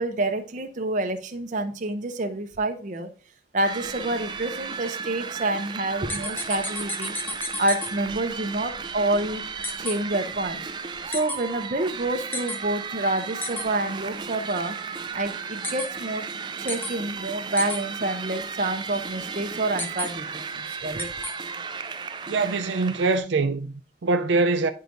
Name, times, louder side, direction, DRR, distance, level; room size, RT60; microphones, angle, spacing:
voice 1, 0.0-3.1 3.5-7.2 7.6-9.4 9.8-10.6 11.0-14.8 15.1-16.2 16.6-21.1, right 2 dB, 45° right, 0.7 m, -28 dB
sound 1, 3.6-23.2, right 5 dB, 25° right, 0.3 m, -35 dB
sound 2, 6.1-7.9 9.6-9.9 11.1-11.4 12.3-12.6 13.4-13.6 15.6-15.9 16.7-16.9 17.6-17.8 19.8-20.1 21.0-21.3, left 2 dB, 10° left, 0.6 m, -31 dB
voice 2, 22.2-24.7, right 3 dB, 85° right, 0.5 m, -24 dB
9.9 x 4.6 x 2.6 m
head